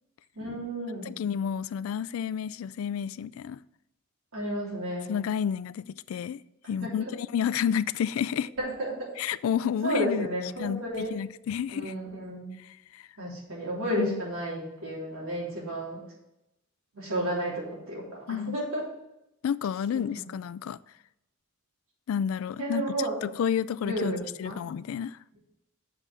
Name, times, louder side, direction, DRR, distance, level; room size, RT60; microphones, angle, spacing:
voice 1, 0.4-1.1 4.3-5.1 6.8-6.9 8.6-9.1 9.8-11.1 11.7-12.5 13.2-16.0 16.9-18.8 19.9-20.0 22.6-23.2 23.8-24.6, right 1 dB, 75° right, 3.2 m, -32 dB
voice 2, 1.1-3.6 5.1-6.4 6.7-8.5 9.2-10.3 10.6-11.9 12.6-13.1 14.0-14.2 18.3-18.6 19.4-20.8 22.1-22.9 23.2-25.2, left 8 dB, 75° left, 0.3 m, -30 dB
7.0 x 5.5 x 6.1 m
head